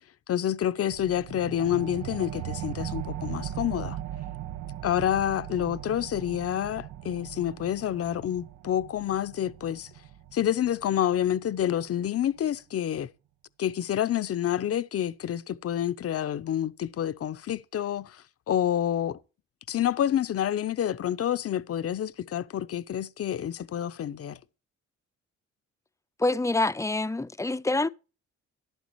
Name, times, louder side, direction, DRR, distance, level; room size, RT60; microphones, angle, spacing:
voice 1, 0.3-4.0 4.8-9.9 10.3-13.1 13.6-19.2 19.7-24.4, left 10 dB, 50° left, 0.8 m, -28 dB
sound 1, 0.9-12.0, right 13 dB, 70° right, 0.8 m, -39 dB
voice 2, 26.2-27.9, left 2 dB, 10° left, 0.6 m, -26 dB
12.5 x 11.5 x 3.1 m
cardioid pair, 90°, 30 cm